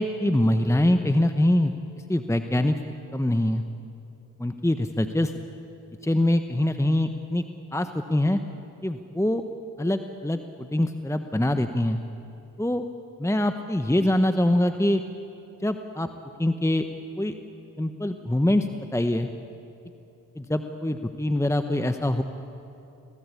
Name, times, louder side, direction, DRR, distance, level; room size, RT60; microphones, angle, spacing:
voice 1, 0.0-1.7 2.1-2.8 3.1-3.6 4.4-5.3 6.0-7.4 7.7-8.4 8.8-9.4 9.8-12.0 12.6-12.8 13.2-15.0 15.6-16.1 16.4-16.9 17.2-17.3 17.8-19.3 20.4-22.2, left 1 dB, 5° left, 8 dB, 1.2 m, -24 dB
22.5 x 18.0 x 8.6 m, 2.9 s
hypercardioid pair, 40°, 46 cm